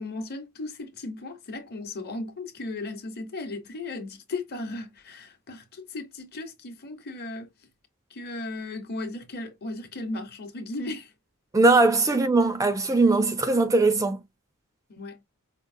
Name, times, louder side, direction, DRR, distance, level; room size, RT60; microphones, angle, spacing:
voice 1, 0.0-7.5 8.1-11.1 14.9-15.2, left 2 dB, 50° left, 0.9 m, -36 dB
voice 2, 11.5-14.2, right 3 dB, 15° right, 0.4 m, -20 dB
5.0 x 2.0 x 2.5 m
head